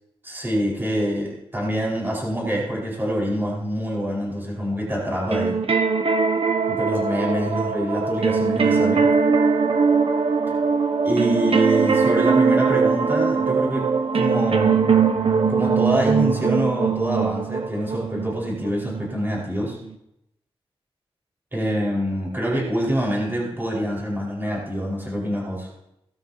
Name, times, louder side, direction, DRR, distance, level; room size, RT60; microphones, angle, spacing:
voice 1, 0.2-5.6 6.7-9.2 11.0-13.9 14.1-14.9 15.5-19.8 21.5-25.7, equal, 20° right, -3 dB, 4.7 m, -25 dB
sound 1, 5.3-19.9, right 5 dB, 65° right, 1.1 m, -21 dB
18.0 x 12.5 x 2.8 m, 0.82 s
wide cardioid pair, 95°, 10 cm